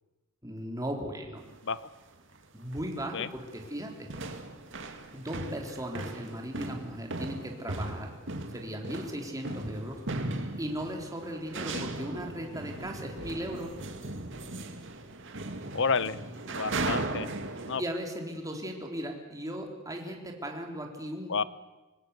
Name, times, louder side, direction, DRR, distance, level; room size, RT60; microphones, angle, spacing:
voice 1, 0.4-1.4 2.5-4.4 5.1-8.1 8.5-10.0 10.6-13.8 17.8-21.4, equal, 15° right, 2 dB, 3.6 m, -37 dB
sound 1, 1.4-1.6 2.3-2.4 2.7-3.1 3.4-17.8, right 2 dB, 65° right, 2.4 m, -37 dB
voice 2, 15.7-16.2 16.5-17.3 17.7-17.8 21.3-21.4, left 5 dB, 65° left, 16 dB, 1.0 m, -30 dB
26.5 x 19.5 x 8.2 m, 1.1 s
head